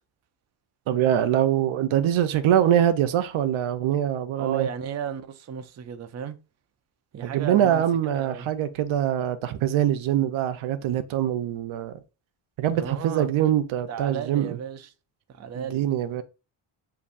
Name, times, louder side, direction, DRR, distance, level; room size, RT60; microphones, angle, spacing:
voice 1, 0.9-4.7 7.2-12.0 12.6-14.6 15.6-16.2, right 10 dB, 70° right, 0.7 m, -23 dB
voice 2, 4.4-6.4 7.1-7.8 8.1-8.5 12.7-13.3 13.9-14.9 15.3-15.8, right 8 dB, 35° right, 0.5 m, -34 dB
6.8 x 2.6 x 2.5 m
cardioid pair, 90°, 49 cm